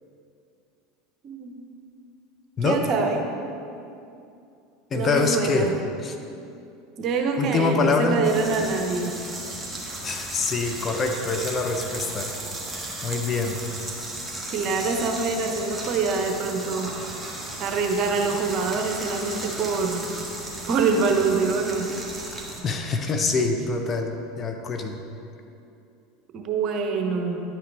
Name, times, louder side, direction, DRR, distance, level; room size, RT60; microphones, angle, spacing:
voice 1, 1.2-1.6 2.6-3.2 4.9-5.7 7.0-9.2 14.5-17.0 17.6-20.1 20.7-21.9 26.3-27.4, right 4 dB, 50° right, 3 dB, 0.9 m, -25 dB
voice 2, 4.9-5.7 6.0-6.2 7.4-8.2 10.0-12.3 12.7-13.6 22.6-25.0, left 3 dB, 35° left, 4 dB, 0.8 m, -25 dB
sound 1, 8.2-22.6, right 2 dB, 5° right, 1.4 m, -35 dB
10.0 x 4.9 x 3.4 m, 2.6 s
hypercardioid pair, 90°, 0 cm